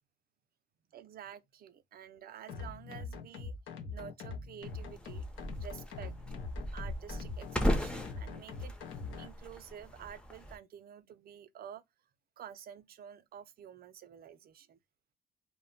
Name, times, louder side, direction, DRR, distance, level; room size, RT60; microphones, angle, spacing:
voice 1, 0.9-3.5 3.9-6.1 6.7-8.7 9.2-11.8 12.4-14.8, right 9 dB, 50° right, 0.4 m, -50 dB
sound 1, 2.5-9.3, left 4 dB, 75° left, 0.6 m, -43 dB
sound 2, 4.6-10.6, equal, 5° left, 0.5 m, -37 dB
2.1 x 2.0 x 3.7 m
cardioid pair, 90°, 20 cm